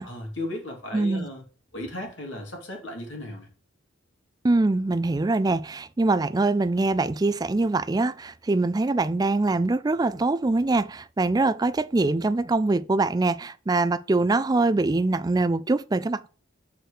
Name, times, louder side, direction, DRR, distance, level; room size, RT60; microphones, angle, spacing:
voice 1, 0.0-1.4 1.7-3.5, left 1 dB, 65° left, 2.8 m, -35 dB
voice 2, 0.9-1.3 4.4-16.3, right 2 dB, 20° right, 0.4 m, -23 dB
6.3 x 4.7 x 6.6 m
head